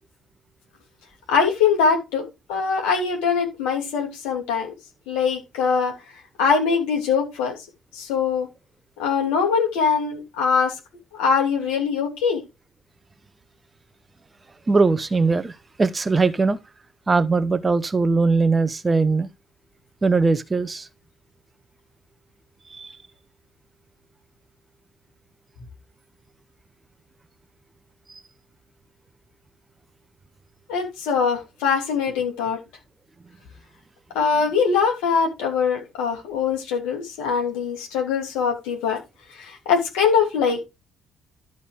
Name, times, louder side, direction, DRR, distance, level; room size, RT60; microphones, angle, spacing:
voice 1, 1.3-4.7 5.1-5.9 6.4-7.6 7.9-8.5 9.0-10.8 11.2-12.4 30.7-32.6 34.1-39.0 39.3-40.7, left 6 dB, 65° left, 2.9 m, -22 dB
voice 2, 14.7-16.6 17.1-19.3 20.0-20.9 22.7-22.9, right 4 dB, 25° right, 0.7 m, -20 dB
12.0 x 4.2 x 5.0 m
figure-of-eight pair, 50°, 0 cm